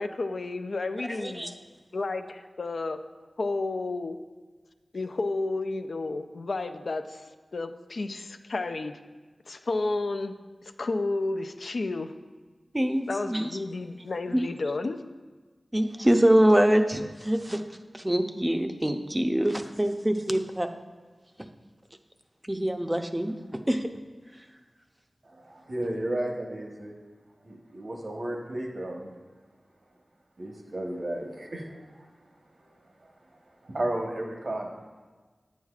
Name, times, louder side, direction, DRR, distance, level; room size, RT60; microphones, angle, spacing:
voice 1, 0.0-1.5 1.9-3.0 3.4-4.2 4.9-9.0 9.5-10.3 10.8-12.1 13.1-15.0, left 3 dB, 75° left, 8 dB, 0.4 m, -31 dB
voice 2, 1.1-1.5 12.7-13.5 14.3-14.4 15.7-17.6 17.9-20.7 22.5-23.9, right 1 dB, 15° right, 6 dB, 0.5 m, -24 dB
voice 3, 25.2-26.9 27.4-29.1 30.4-33.3 33.6-34.8, right 1 dB, 65° right, 1 dB, 1.1 m, -34 dB
9.2 x 7.2 x 2.4 m, 1.4 s
wide cardioid pair, 50°, 0 cm